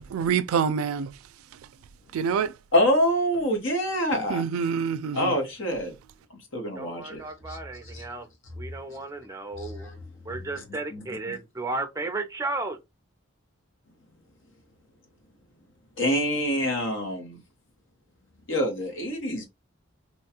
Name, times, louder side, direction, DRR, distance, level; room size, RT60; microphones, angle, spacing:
voice 1, 0.1-1.1 2.1-2.5 4.3-5.3, right 7 dB, 90° right, 0.3 m, -26 dB
voice 2, 2.7-4.7 5.1-5.9 6.5-7.2 7.5-7.6 7.9-8.0 9.6-9.9 10.9-11.3 16.0-17.4 18.5-19.5, equal, 65° left, 1.1 m, -26 dB
voice 3, 6.7-8.3 8.6-9.9 10.3-12.8, right 2 dB, 15° right, 0.5 m, -34 dB
3.0 x 2.3 x 2.8 m
head